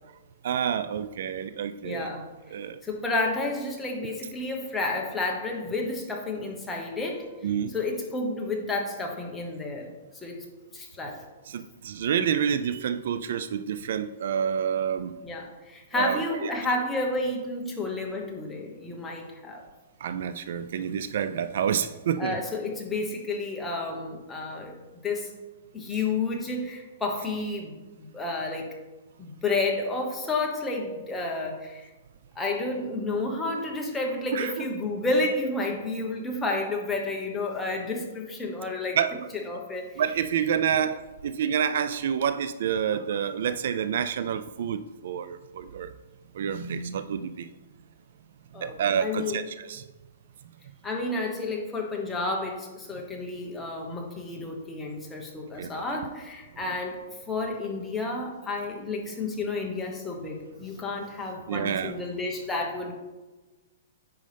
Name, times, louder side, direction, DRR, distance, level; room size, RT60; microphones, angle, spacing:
voice 1, 0.4-2.1 2.5-2.8 7.4-7.7 11.5-15.1 16.0-16.6 20.0-22.4 34.3-34.7 38.9-39.2 40.0-45.9 46.3-47.5 48.5-49.8 55.6-55.8 56.6-56.8 61.5-62.0, right 8 dB, 60° right, 12 dB, 0.3 m, -28 dB
voice 2, 1.8-2.3 2.8-7.3 7.7-10.4 10.7-11.2 15.2-19.6 22.2-24.7 25.0-25.3 25.7-28.7 29.2-31.9 32.3-40.2 48.5-49.4 50.8-57.0 57.3-62.9, left 2 dB, 10° left, 0 dB, 1.0 m, -31 dB
9.1 x 5.3 x 3.4 m, 1.2 s
hypercardioid pair, 165°, 0 cm